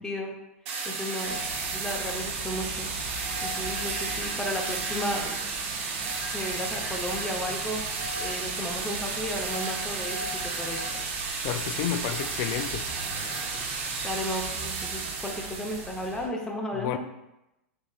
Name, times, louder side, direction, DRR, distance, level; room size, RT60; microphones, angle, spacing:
voice 1, 0.0-0.3 0.8-1.4 1.7-2.9 3.4-5.4 6.3-7.8 8.2-11.1 14.0-17.0, left 1 dB, 10° left, 0 dB, 0.8 m, -34 dB
sound 1, 0.7-16.1, right 4 dB, 60° right, 0.8 m, -33 dB
sound 2, 1.2-16.3, right 2 dB, 25° right, 0.8 m, -42 dB
voice 2, 11.4-12.9 16.7-17.0, left 10 dB, 50° left, 8 dB, 0.4 m, -30 dB
5.6 x 3.5 x 2.4 m, 0.93 s
hypercardioid pair, 115°, 7 cm